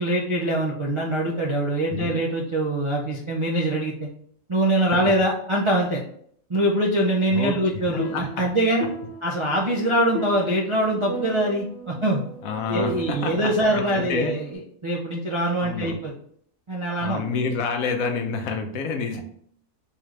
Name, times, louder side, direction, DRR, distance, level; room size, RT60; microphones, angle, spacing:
voice 1, 0.0-4.1 4.5-6.0 6.5-8.8 9.2-12.2 12.7-14.4 14.8-16.1 16.7-17.2, right 1 dB, 50° right, -5 dB, 0.3 m, -23 dB
sound 1, 7.6-14.5, right 1 dB, 60° left, 1.2 m, -36 dB
voice 2, 7.9-8.5 12.4-14.4 15.6-15.9 17.0-19.2, left 5 dB, 80° left, 5 dB, 1.1 m, -28 dB
3.7 x 3.3 x 3.2 m, 0.64 s
omnidirectional pair, 1.4 m